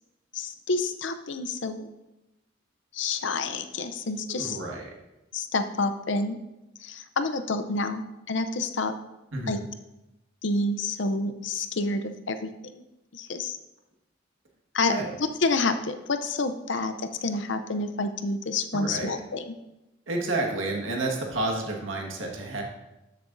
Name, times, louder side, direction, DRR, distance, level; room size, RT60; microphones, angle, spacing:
voice 1, 0.3-1.9 2.9-4.6 5.3-6.4 6.8-8.9 9.5-9.6 10.4-12.8 13.1-13.6 14.7-19.5, left 3 dB, 70° left, 9 dB, 0.6 m, -29 dB
voice 2, 4.3-4.9 9.3-9.6 14.9-15.1 18.7-19.2 20.1-22.6, right 2 dB, 85° right, 0 dB, 1.7 m, -30 dB
13.0 x 6.8 x 2.6 m, 0.97 s
head